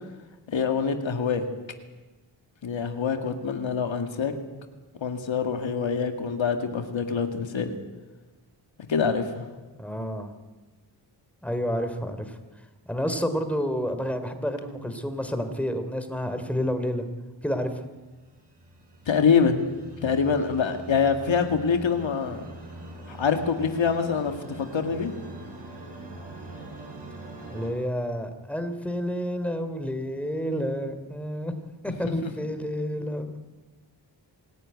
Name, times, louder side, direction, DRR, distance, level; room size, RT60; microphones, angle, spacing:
voice 1, 0.5-1.5 2.6-4.3 5.0-7.7 8.9-9.4 19.1-19.6 20.0-22.4 23.1-25.1, left 6 dB, 80° left, 6 dB, 2.1 m, -25 dB
voice 2, 9.8-10.3 11.4-12.4 12.9-17.0 17.4-17.8 27.5-31.5 31.8-33.3, equal, 5° left, 8 dB, 3.3 m, -29 dB
sound 1, 18.0-27.7, right 2 dB, 65° right, 6.0 m, -43 dB
25.5 x 14.0 x 9.6 m, 1.2 s
cardioid pair, 60°, 45 cm